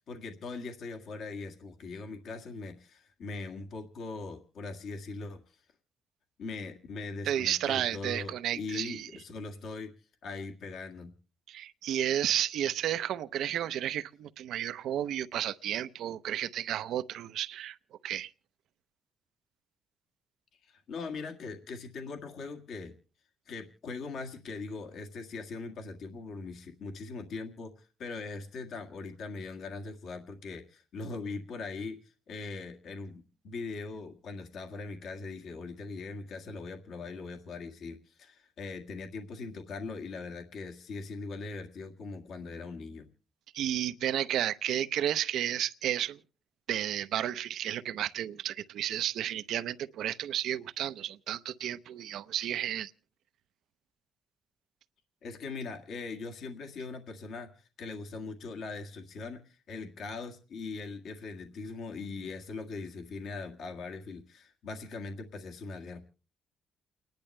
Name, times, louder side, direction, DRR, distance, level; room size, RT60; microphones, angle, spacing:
voice 1, 0.1-5.4 6.4-9.9 10.2-11.1 20.6-23.0 23.5-43.1 55.2-66.0, left 3 dB, 70° left, 1.8 m, -41 dB
voice 2, 7.2-9.1 11.5-17.8 18.0-18.3 43.5-46.2 46.7-52.9, right 11 dB, 80° right, 0.6 m, -32 dB
29.5 x 10.5 x 3.2 m
cardioid pair, 90°, 0 cm